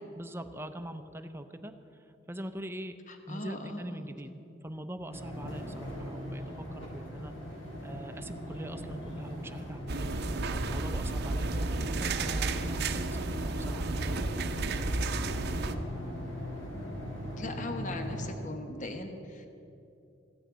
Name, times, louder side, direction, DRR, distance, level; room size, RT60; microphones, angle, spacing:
voice 1, 0.2-1.7 2.3-3.0 3.3-4.3 4.6-7.3 7.8-10.2 10.5-14.3, right 1 dB, 10° right, 8 dB, 0.6 m, -42 dB
voice 2, 3.1-4.4 17.3-19.4, left 2 dB, 40° left, 5 dB, 1.1 m, -40 dB
sound 1, 5.1-18.3, equal, 90° left, 3.2 m, -40 dB
sound 2, 9.9-15.8, right 3 dB, 55° right, 0.7 m, -32 dB
15.0 x 6.5 x 9.0 m, 2.8 s
head